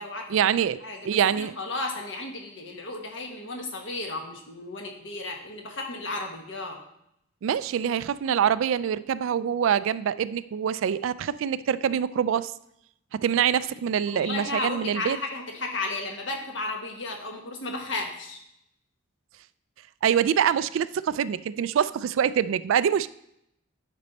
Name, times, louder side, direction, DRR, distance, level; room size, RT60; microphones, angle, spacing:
voice 1, 0.3-0.8 1.0-1.5 7.4-12.5 13.1-15.2 20.0-23.1, right 8 dB, 70° right, 16 dB, 0.3 m, -25 dB
voice 2, 0.8-6.8 14.0-18.4, left 2 dB, 60° left, 2 dB, 1.4 m, -34 dB
9.7 x 5.3 x 4.1 m, 0.78 s
head